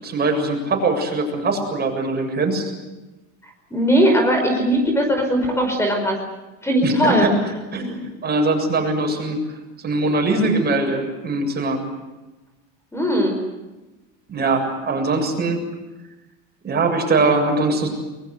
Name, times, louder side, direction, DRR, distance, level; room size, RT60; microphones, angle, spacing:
voice 1, 0.0-2.7 6.8-7.3 7.7-9.4 9.8-11.8 14.3-15.6 16.6-17.9, right 2 dB, 25° right, 3 dB, 7.3 m, -21 dB
voice 2, 3.7-6.2 6.6-7.3 12.9-13.4, equal, 5° left, 4 dB, 5.0 m, -19 dB
24.0 x 22.0 x 8.2 m, 1.1 s
supercardioid pair, 115°, 38 cm